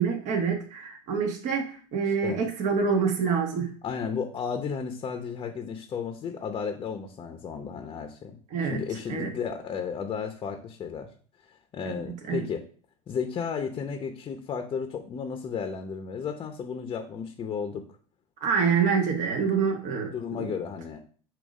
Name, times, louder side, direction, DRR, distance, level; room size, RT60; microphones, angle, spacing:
voice 1, 0.0-3.7 8.5-8.8 9.1-9.3 12.3-12.4 18.4-20.5, right 6 dB, 50° right, 2 dB, 1.3 m, -26 dB
voice 2, 3.8-8.3 8.6-11.1 11.7-12.6 13.1-17.8 20.1-21.0, left 6 dB, 30° left, 5 dB, 0.8 m, -33 dB
7.3 x 2.6 x 5.3 m, 0.42 s
supercardioid pair, 115°, 16 cm